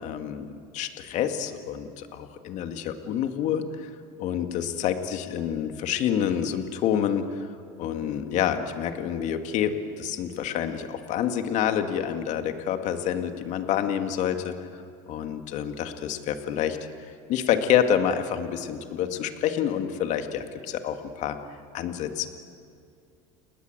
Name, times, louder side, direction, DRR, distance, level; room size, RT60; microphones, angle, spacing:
voice 1, 0.0-3.9 4.2-7.5 7.8-14.5 15.1-16.8 17.3-21.4 21.7-22.3, left 9 dB, 55° left, 7 dB, 2.2 m, -28 dB
30.0 x 20.0 x 8.2 m, 2.4 s
supercardioid pair, 110°, 15 cm